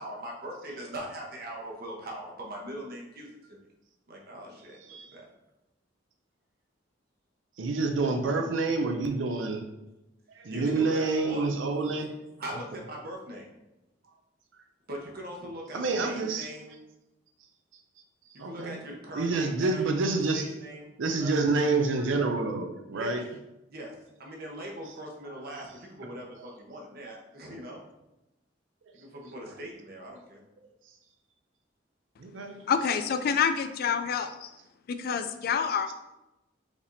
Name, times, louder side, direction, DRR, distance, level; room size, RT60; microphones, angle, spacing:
voice 1, 0.0-3.6 4.1-5.3 10.5-11.5 12.4-13.5 14.9-16.8 18.3-19.8 20.3-20.9 21.2-21.4 22.9-23.2 23.7-23.9 24.2-27.8 28.9-30.4, right 1 dB, 55° right, -1 dB, 0.9 m, -41 dB
voice 2, 7.6-9.7 10.3-12.1 15.7-16.5 18.4-18.8 19.1-20.5 21.0-23.2 26.4-26.5 27.1-27.2 32.2-32.6, right 3 dB, 80° right, 5 dB, 0.5 m, -28 dB
voice 3, 32.7-34.5 34.9-35.9, left 6 dB, 55° left, 9 dB, 0.3 m, -27 dB
4.9 x 3.4 x 2.6 m, 0.95 s
head